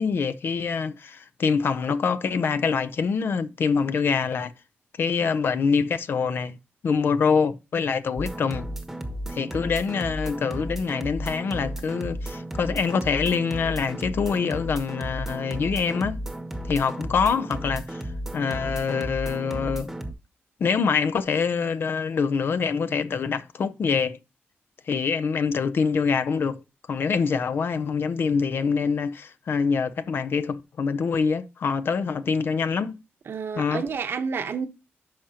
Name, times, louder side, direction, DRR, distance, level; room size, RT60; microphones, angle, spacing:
voice 1, 0.0-4.5 5.0-6.6 6.8-8.7 9.3-16.2 16.7-18.0 18.3-19.9 20.6-24.2 24.9-26.6 26.9-33.0 33.5-33.8, left 5 dB, 60° left, 0.6 m, -25 dB
sound 1, 8.2-20.1, equal, 5° right, 1.1 m, -34 dB
voice 2, 33.3-34.7, right 6 dB, 65° right, 0.9 m, -29 dB
11.5 x 5.0 x 2.9 m
wide cardioid pair, 130°, 4 cm